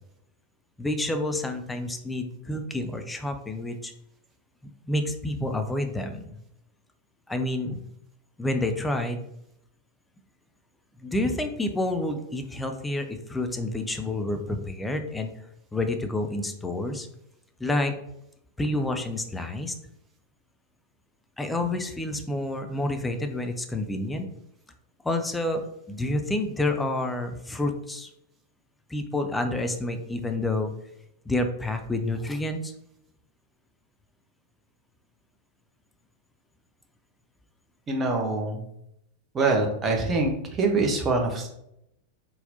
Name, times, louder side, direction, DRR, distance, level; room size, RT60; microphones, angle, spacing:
voice 1, 0.8-3.9 4.6-6.4 7.3-7.8 8.4-9.2 11.0-15.3 15.7-17.1 17.6-17.9 18.6-19.7 21.4-24.3 25.0-28.1 28.9-30.7 31.3-32.7, left 2 dB, 10° left, 5 dB, 0.5 m, -29 dB
voice 2, 37.9-38.7 39.3-41.5, right 3 dB, 20° right, 2 dB, 0.9 m, -24 dB
4.2 x 4.0 x 2.7 m, 0.78 s
figure-of-eight pair, 90°, 0 cm